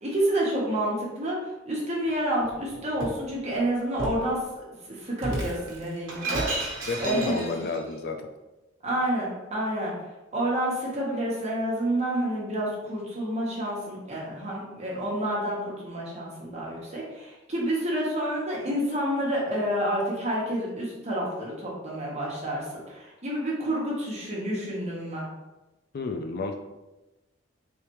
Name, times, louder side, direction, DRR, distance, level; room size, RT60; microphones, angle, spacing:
voice 1, 0.0-4.4 4.9-7.4 8.8-9.9 10.3-25.3, right 1 dB, 35° right, -4 dB, 1.1 m, -29 dB
Shatter, 2.4-3.2 4.0-4.3 5.2-7.8, right 2 dB, 80° right, 0.9 m, -33 dB
voice 2, 6.9-8.3 25.9-26.6, left 3 dB, 50° left, 5 dB, 0.4 m, -31 dB
3.5 x 3.3 x 3.0 m, 1.0 s
head